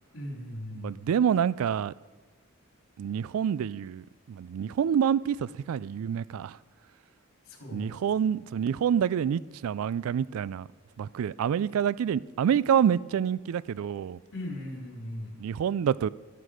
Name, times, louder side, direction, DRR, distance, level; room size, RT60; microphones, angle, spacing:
voice 1, 0.1-0.9 7.5-7.9 14.3-15.3, left 1 dB, 70° left, 3.2 m, -38 dB
voice 2, 0.8-1.9 3.0-6.6 7.7-10.7 11.0-14.2 15.4-16.1, right 8 dB, 75° right, 0.3 m, -27 dB
12.5 x 11.0 x 5.0 m
head